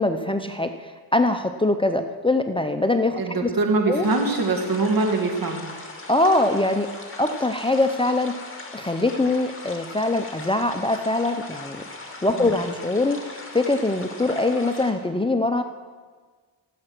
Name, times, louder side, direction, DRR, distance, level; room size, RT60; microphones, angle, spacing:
voice 1, 0.0-3.5 3.9-4.0 6.1-6.9 7.2-8.3 8.7-11.8 12.2-15.6, left 2 dB, 10° left, 7 dB, 0.7 m, -23 dB
voice 2, 3.2-5.6 12.3-12.6, right 3 dB, 50° right, 3 dB, 2.2 m, -23 dB
sound 1, 4.0-14.9, left 2 dB, 30° left, 2.5 m, -39 dB
17.0 x 7.7 x 6.1 m, 1.5 s
cardioid pair, 60°, 44 cm